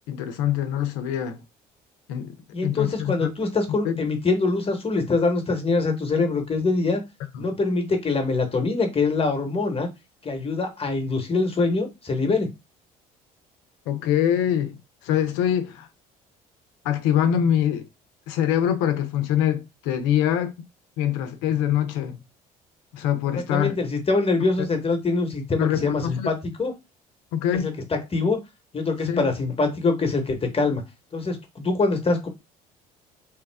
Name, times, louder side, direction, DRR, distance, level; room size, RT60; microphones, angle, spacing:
voice 1, 0.1-1.4 2.1-2.4 2.6-3.3 3.7-4.0 7.3-7.5 13.9-14.8 15.0-15.9 16.8-17.8 18.3-20.5 21.0-22.2 22.9-23.8 24.6-24.7 25.6-26.3 27.3-27.7 29.1-29.2, left 10 dB, 80° left, 0.7 m, -24 dB
voice 2, 2.5-7.0 7.4-9.9 10.2-12.5 23.3-26.7 27.5-28.4 28.7-30.8 31.1-32.3, left 3 dB, 30° left, 1.1 m, -24 dB
3.1 x 2.3 x 3.4 m
hypercardioid pair, 65°, 19 cm